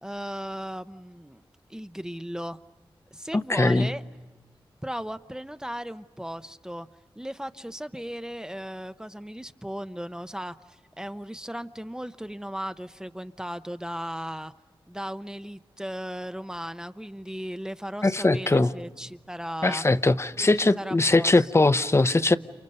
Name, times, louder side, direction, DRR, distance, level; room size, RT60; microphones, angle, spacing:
voice 1, 0.0-1.4 1.7-2.6 3.1-4.0 4.8-6.9 7.2-14.5 14.9-19.8 20.8-21.6, equal, 5° right, 0.7 m, -36 dB
voice 2, 3.3-3.9 18.0-18.7 19.6-22.4, left 2 dB, 30° left, 0.8 m, -21 dB
29.5 x 29.5 x 5.4 m
wide cardioid pair, 85°, 9 cm